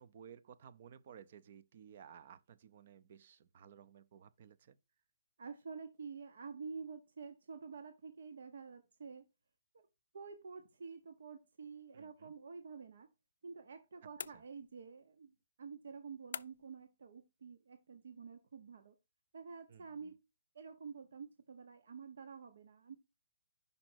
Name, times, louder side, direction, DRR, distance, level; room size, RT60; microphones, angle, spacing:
voice 1, 0.0-4.8 11.9-12.3 14.3-14.4 19.7-20.1, right 8 dB, 45° right, 0.6 m, -57 dB
voice 2, 5.4-9.2 10.1-13.1 13.4-18.9 19.3-20.2 20.5-23.0, right 5 dB, 70° right, 0.9 m, -49 dB
sound 1, 14.2-14.9 16.3-16.8, left 7 dB, 65° left, 0.3 m, -46 dB
5.3 x 5.1 x 4.5 m
hypercardioid pair, 165°, 0 cm